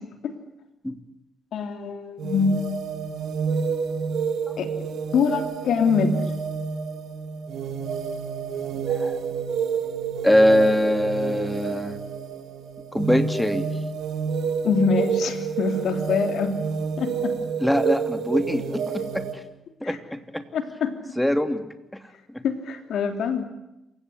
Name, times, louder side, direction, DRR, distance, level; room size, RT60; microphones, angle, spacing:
voice 1, 1.5-2.6 4.6-4.7 5.1-6.2 14.6-16.6 17.0-17.4 19.8-20.0 20.5-21.0 22.4-23.4, left 5 dB, 70° left, 7 dB, 3.2 m, -24 dB
sound 1, 2.2-19.3, right 6 dB, 70° right, 3.3 m, -29 dB
voice 2, 8.8-9.2 9.8-9.9 10.2-12.0 12.9-13.6 17.6-19.2 19.8-20.4 21.2-21.6 21.9-22.0 22.3-22.4, equal, 5° left, 8 dB, 2.9 m, -22 dB
27.5 x 16.5 x 10.0 m, 0.90 s
hypercardioid pair, 50°, 0 cm